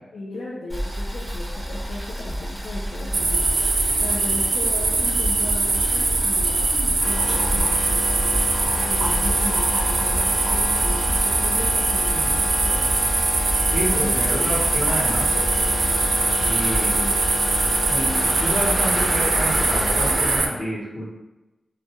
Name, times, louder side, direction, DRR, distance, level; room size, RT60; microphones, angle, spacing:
voice 1, 0.1-3.5 4.0-7.7 8.7-13.0 13.9-14.2 16.8-17.2, left 2 dB, 80° left, -4 dB, 0.3 m, -35 dB
Boiling, 0.7-20.4, equal, 5° right, 0.5 m, -31 dB
sound 1, 3.1-20.5, right 3 dB, 65° right, 0.3 m, -22 dB
sound 2, 7.0-20.2, left 1 dB, 20° left, 0.8 m, -30 dB
voice 2, 13.7-15.7 16.4-16.9 17.9-21.0, equal, 50° left, -7 dB, 0.9 m, -29 dB
2.2 x 2.1 x 2.8 m, 1.0 s
wide cardioid pair, 135°, 0 cm